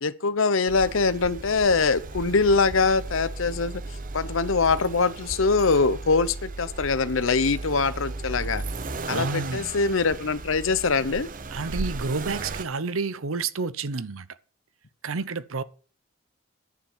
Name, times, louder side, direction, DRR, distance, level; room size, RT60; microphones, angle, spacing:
voice 1, 0.0-3.8 4.1-8.6 9.1-11.3, left 4 dB, 75° left, 0.8 m, -23 dB
Accelerating revving vroom, 0.7-12.6, right 3 dB, 40° right, 0.7 m, -35 dB
voice 2, 9.1-9.6 11.5-14.3 15.0-15.6, right 4 dB, 85° right, 0.8 m, -29 dB
10.5 x 7.1 x 7.3 m
head